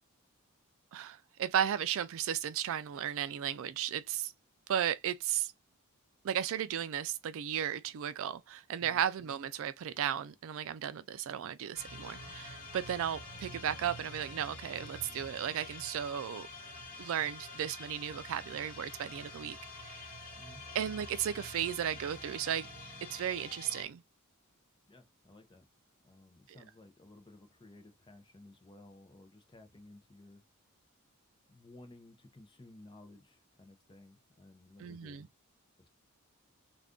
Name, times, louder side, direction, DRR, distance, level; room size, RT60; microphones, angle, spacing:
voice 1, 0.9-4.3 4.7-5.5 6.2-16.5 17.0-20.1 20.7-22.7 23.1-24.0 26.5-26.6 34.8-35.3, right 9 dB, 60° right, 0.3 m, -35 dB
sound 1, 11.7-23.8, left 2 dB, 45° left, 1.2 m, -47 dB
voice 2, 24.9-25.6 26.0-30.4 31.5-35.3, left 2 dB, 20° left, 0.6 m, -56 dB
2.5 x 2.4 x 3.5 m
head